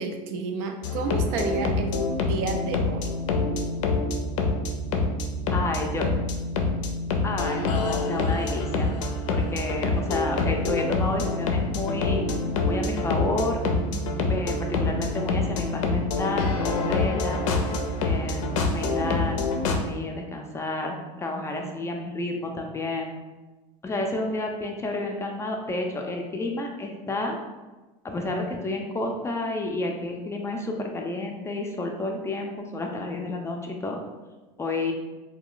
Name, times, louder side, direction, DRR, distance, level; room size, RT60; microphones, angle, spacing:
voice 1, 0.0-2.0 2.3-3.0, right 4 dB, 70° right, 5 dB, 0.4 m, -30 dB
sound 1, 0.8-19.8, left 3 dB, 80° left, 0.4 m, -26 dB
voice 2, 5.5-6.1 7.2-8.9 9.3-12.2 12.7-13.6 13.9-17.4 18.0-23.1 23.8-27.4 28.0-34.0 34.6-34.9, left 2 dB, 15° left, 2 dB, 0.4 m, -30 dB
2.3 x 2.2 x 3.7 m, 1.2 s
supercardioid pair, 110°, 16 cm